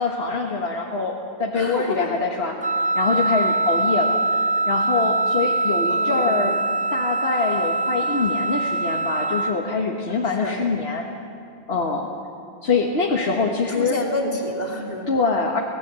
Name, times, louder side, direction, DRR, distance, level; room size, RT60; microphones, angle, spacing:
voice 1, 0.0-6.6 6.9-11.1 11.7-12.1 12.6-13.9 15.1-15.6, left 4 dB, 85° left, 0 dB, 1.7 m, -24 dB
voice 2, 1.5-2.1 5.9-6.5 10.4-10.5 13.7-15.1, left 2 dB, 40° left, -1 dB, 3.0 m, -29 dB
Wind instrument woodwind instrument, 2.6-9.5, right 2 dB, 15° right, 0.3 m, -23 dB
25.0 x 17.5 x 7.6 m, 2.6 s
omnidirectional pair, 1.0 m